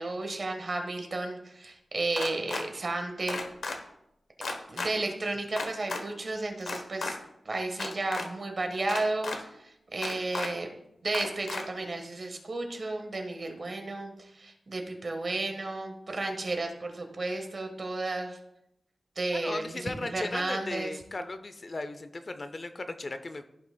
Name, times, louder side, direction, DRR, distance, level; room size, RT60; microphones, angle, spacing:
voice 1, 0.0-3.4 4.7-7.2 7.4-9.3 9.6-10.7 11.0-18.4 19.2-20.9, right 2 dB, 45° right, 4 dB, 1.3 m, -33 dB
sound 1, 2.1-2.6 3.3-3.8 4.4-4.9 5.6-6.0 6.6-7.1 7.7-8.3 8.9-9.4 10.0-10.5 11.1-11.6, left 3 dB, 85° left, 0.9 m, -33 dB
voice 2, 19.3-23.4, left 2 dB, 40° left, 9 dB, 0.5 m, -36 dB
15.0 x 5.9 x 2.2 m, 0.82 s
wide cardioid pair, 130°, 0 cm